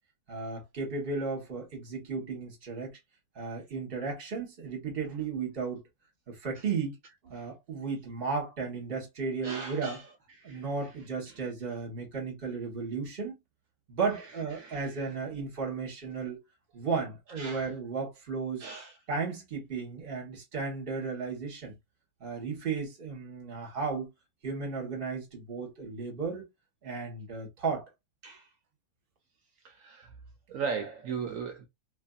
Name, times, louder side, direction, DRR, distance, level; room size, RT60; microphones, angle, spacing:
voice 1, 0.3-2.9 3.3-5.9 6.3-7.0 7.2-10.0 10.4-13.4 13.9-16.4 16.7-18.6 19.1-21.7 22.2-24.1 24.4-26.4 26.8-27.9, right 4 dB, 40° right, 1.2 m, -34 dB
voice 2, 9.4-10.1 10.4-10.7 11.3-11.4 14.6-15.1 17.3-17.7 18.6-18.9 28.2-28.5 29.6-30.1 30.5-31.7, right 5 dB, 70° right, 0.9 m, -38 dB
3.0 x 2.5 x 2.3 m
omnidirectional pair, 1.6 m